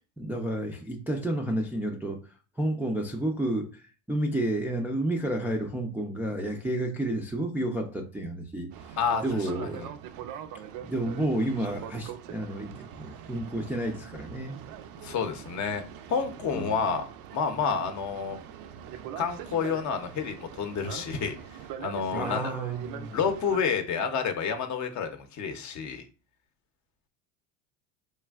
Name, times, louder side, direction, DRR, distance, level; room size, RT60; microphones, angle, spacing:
voice 1, 0.2-9.0 9.2-9.9 10.8-14.6 16.5-16.8 22.1-23.2, right 1 dB, 5° right, 1 dB, 0.3 m, -31 dB
Boat Water vehicle, 8.7-23.6, right 9 dB, 65° right, 0.5 m, -42 dB
voice 2, 9.0-9.5 9.8-9.9 15.0-15.8 16.1-18.4 19.2-21.4 21.8-22.4 23.1-26.1, left 6 dB, 50° left, 7 dB, 0.6 m, -29 dB
3.2 x 2.4 x 2.3 m, 0.37 s
supercardioid pair, 100°, 38 cm